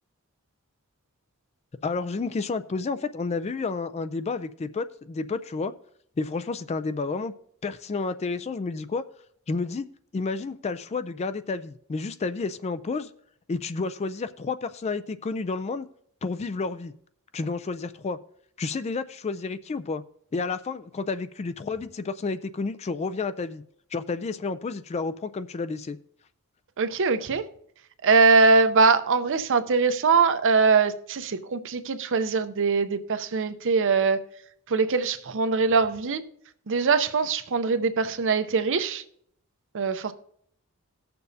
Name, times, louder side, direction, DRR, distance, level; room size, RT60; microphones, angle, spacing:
voice 1, 1.8-5.7 6.2-7.3 7.6-9.0 9.5-9.9 10.1-13.1 13.5-15.9 16.2-16.9 17.3-18.2 18.6-20.0 20.3-23.6 23.9-26.0, left 4 dB, 30° left, 0.3 m, -30 dB
voice 2, 26.8-27.4 28.0-34.2 34.7-36.2 36.7-39.0 39.7-40.1, right 4 dB, 60° right, 0.6 m, -22 dB
18.5 x 6.8 x 2.7 m
head